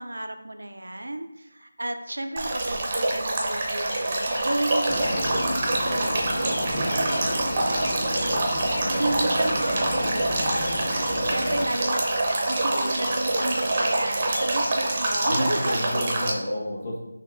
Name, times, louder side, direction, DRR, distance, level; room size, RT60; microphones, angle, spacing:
voice 1, 0.0-15.8 16.3-16.4, right 1 dB, 85° right, 6 dB, 0.4 m, -33 dB
Male speech man speaking / Stream / Trickle dribble, 2.4-16.3, right 2 dB, 25° right, 0.6 m, -26 dB
sound 1, 3.8-16.2, left 1 dB, 65° left, 0.6 m, -41 dB
sound 2, 4.9-11.7, left 1 dB, 10° left, 0.7 m, -32 dB
voice 2, 5.0-5.3 9.2-9.4 15.3-17.0, equal, 30° left, -4 dB, 1.0 m, -31 dB
5.7 x 2.9 x 2.5 m, 0.93 s
figure-of-eight pair, 170°, 0 cm